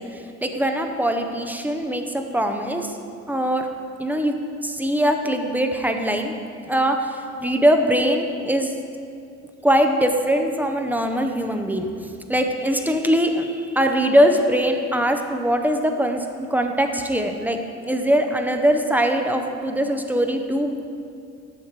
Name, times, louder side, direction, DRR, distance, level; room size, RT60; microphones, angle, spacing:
voice 1, 0.1-2.9 3.3-3.7 4.0-6.3 6.6-8.7 9.6-17.6 17.9-20.8, equal, 5° right, 5 dB, 0.6 m, -22 dB
8.1 x 6.4 x 4.7 m, 2.4 s
cardioid pair, 95°, 30 cm